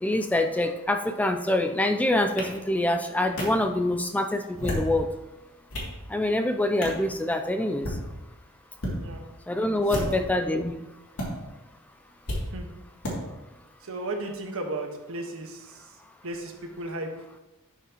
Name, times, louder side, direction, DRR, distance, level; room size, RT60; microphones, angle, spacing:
voice 1, 0.0-5.1 6.1-8.0 9.5-10.9, left 1 dB, 5° left, 6 dB, 0.3 m, -25 dB
sound 1, 2.4-2.5 3.4-3.5 4.4-4.9 5.4-5.9 6.8-7.0 7.7-8.0 8.7-9.0 9.8-10.3 11.2-11.3 12.3-12.4 13.0-13.1, left 1 dB, 75° left, 2.6 m, -31 dB
voice 2, 9.9-10.2 12.5-12.7 13.8-16.0 16.2-17.1, right 2 dB, 65° right, 3 dB, 1.3 m, -35 dB
12.0 x 5.8 x 3.0 m, 1.1 s
head